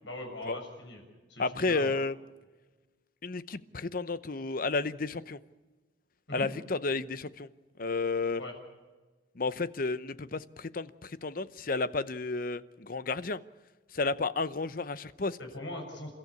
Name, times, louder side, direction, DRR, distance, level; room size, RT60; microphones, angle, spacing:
voice 1, 0.0-1.0 1.3-1.9 6.3-6.5 8.4-8.5 15.4-16.1, left 1 dB, 75° left, 7.1 m, -40 dB
voice 2, 1.4-2.2 3.2-5.4 6.3-7.5 7.8-8.4 9.4-13.4 13.9-15.4, left 3 dB, 50° left, 0.8 m, -32 dB
29.0 x 14.0 x 8.4 m
head